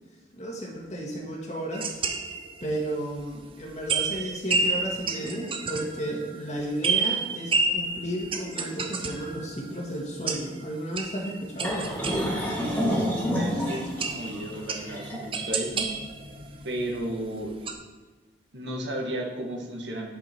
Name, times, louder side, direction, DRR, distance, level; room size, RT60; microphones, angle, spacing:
voice 1, 0.3-2.0 2.6-12.0, right 1 dB, 40° left, -1 dB, 1.8 m, -33 dB
sound 1, 1.7-2.8 3.2-3.3 3.9-12.7 13.4-13.5 14.0-17.0 17.3-17.7, right 4 dB, 30° right, 0.7 m, -30 dB
sound 2, 11.6-16.8, equal, 10° left, 2.2 m, -29 dB
voice 2, 12.6-15.9 16.6-17.7 18.5-20.1, right 1 dB, 90° right, 1 dB, 1.6 m, -34 dB
9.8 x 5.4 x 4.5 m, 1.3 s
head